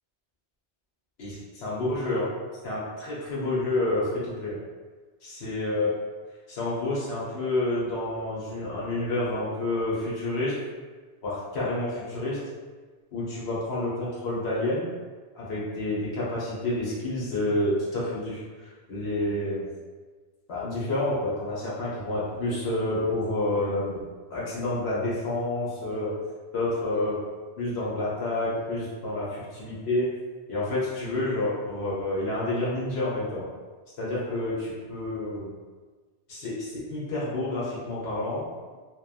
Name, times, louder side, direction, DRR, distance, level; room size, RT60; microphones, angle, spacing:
voice 1, 1.2-2.3 2.6-4.6 5.2-5.9 6.5-10.5 11.2-12.4 13.1-14.9 15.3-19.7 20.5-24.0 24.3-26.1 26.5-27.2 27.6-30.1 30.5-33.5 34.0-35.5 36.3-38.5, left 2 dB, 70° left, -8 dB, 1.0 m, -29 dB
2.9 x 2.1 x 2.4 m, 1.4 s
omnidirectional pair, 1.1 m